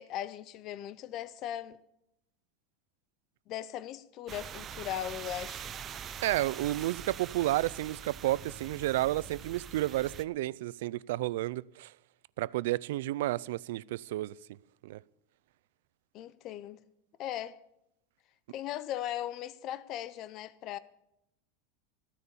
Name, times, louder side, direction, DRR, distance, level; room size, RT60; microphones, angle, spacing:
voice 1, 0.0-1.8 3.5-5.7 16.1-16.8 17.2-17.6 18.5-20.8, left 12 dB, 30° left, 0.6 m, -38 dB
sound 1, 4.3-10.2, right 8 dB, 20° right, 0.6 m, -43 dB
voice 2, 6.2-11.9 12.4-14.3 14.8-15.0, right 16 dB, 65° right, 0.4 m, -31 dB
15.0 x 9.8 x 7.0 m
supercardioid pair, 175°, 0 cm